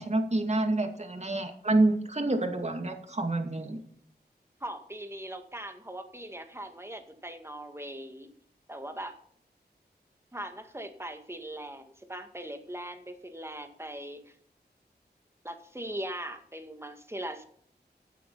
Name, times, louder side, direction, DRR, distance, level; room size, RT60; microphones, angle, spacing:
voice 1, 0.0-3.8, right 2 dB, 40° right, 4 dB, 2.4 m, -28 dB
voice 2, 4.6-8.3 8.7-9.2 10.3-14.4 15.4-17.4, right 1 dB, 15° right, 6 dB, 2.0 m, -40 dB
16.0 x 9.1 x 4.2 m, 0.63 s
wide cardioid pair, 65°, 17 cm